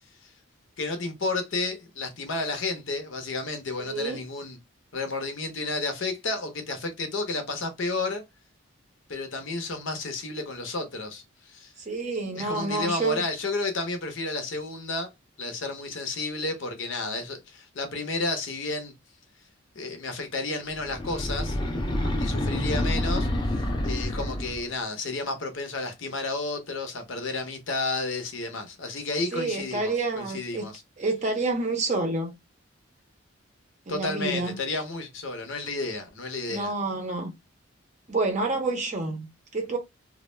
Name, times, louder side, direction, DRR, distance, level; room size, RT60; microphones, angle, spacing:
voice 1, 0.8-4.6 4.9-8.2 9.1-11.7 12.3-15.1 15.4-18.9 19.8-21.6 22.2-23.3 23.8-30.8 33.9-36.7, left 3 dB, 60° left, 0.6 m, -31 dB
voice 2, 3.8-4.2 11.9-13.2 29.3-30.7 31.0-32.4 33.9-34.6 36.5-37.3 38.1-39.8, right 3 dB, 35° right, 0.6 m, -28 dB
sound 1, 20.8-24.7, left 1 dB, 20° left, 0.4 m, -28 dB
2.2 x 2.1 x 3.1 m
head